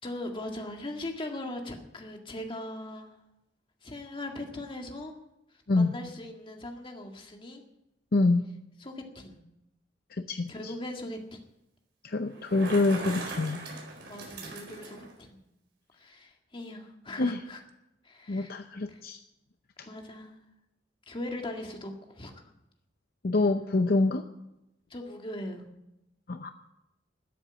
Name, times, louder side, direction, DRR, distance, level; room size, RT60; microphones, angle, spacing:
voice 1, 0.0-3.1 3.8-5.2 5.8-7.6 8.8-9.4 10.5-11.4 14.0-15.4 16.0-17.6 18.0-18.5 18.9-19.0 19.8-20.3 21.1-22.5 24.9-25.7, left 1 dB, 30° left, 2 dB, 2.0 m, -39 dB
voice 2, 8.1-8.4 10.3-10.7 12.0-13.6 17.2-17.4 18.3-19.2 19.8-19.9 23.2-24.2 26.3-26.5, left 2 dB, 55° left, 7 dB, 0.7 m, -26 dB
Bicycle, 12.3-15.1, right 2 dB, 70° right, 4.3 m, -40 dB
13.0 x 8.0 x 9.7 m, 0.88 s
head